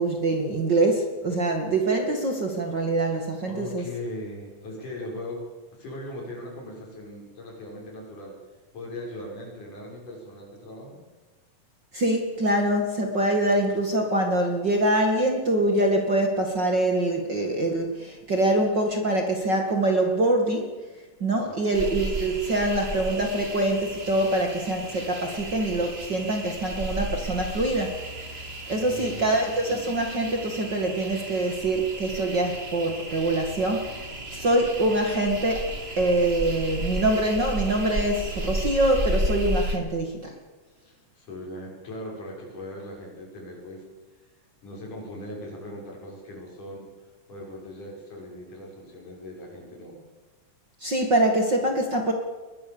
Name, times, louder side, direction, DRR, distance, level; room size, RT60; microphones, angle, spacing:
voice 1, 0.0-3.9 11.9-20.7 21.2-28.1 28.7-33.9 34.3-40.3 50.8-52.1, right 1 dB, 35° right, 3 dB, 2.3 m, -24 dB
voice 2, 3.5-5.4 5.7-8.3 8.7-11.0 21.4-21.7 28.8-29.4 40.9-43.8 44.6-46.9 47.3-50.0, left 1 dB, 65° left, -1 dB, 7.7 m, -39 dB
sound 1, 21.7-39.8, right 1 dB, 20° right, 1.9 m, -33 dB
22.0 x 20.5 x 7.1 m, 1.3 s
omnidirectional pair, 3.9 m